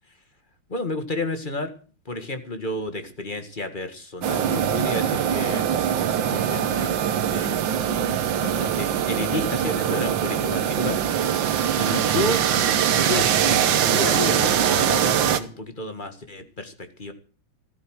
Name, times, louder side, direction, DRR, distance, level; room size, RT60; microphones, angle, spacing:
voice 1, 0.7-1.7 2.0-5.7 6.3-7.6 8.4-11.0 11.8-12.4 12.8-17.1, left 2 dB, 25° left, 8 dB, 1.7 m, -31 dB
sound 1, 4.2-15.4, right 9 dB, 65° right, 1.7 m, -22 dB
15.0 x 12.5 x 6.4 m, 0.40 s
omnidirectional pair, 2.3 m